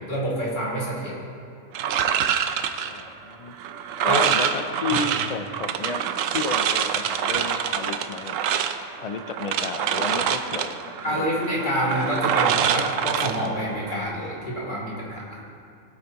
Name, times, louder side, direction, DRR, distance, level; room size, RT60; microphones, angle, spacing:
voice 1, 0.1-1.2 4.0-4.3 4.9-5.0 11.0-15.4, equal, 35° left, -5 dB, 2.3 m, -27 dB
sound 1, 1.7-14.1, right 8 dB, 75° right, 0.9 m, -26 dB
voice 2, 2.9-3.5 4.0-6.0 6.3-8.4 9.0-10.8 11.1-11.3, left 4 dB, 70° left, 7 dB, 0.3 m, -32 dB
20.5 x 8.3 x 2.9 m, 2.4 s
omnidirectional pair, 1.4 m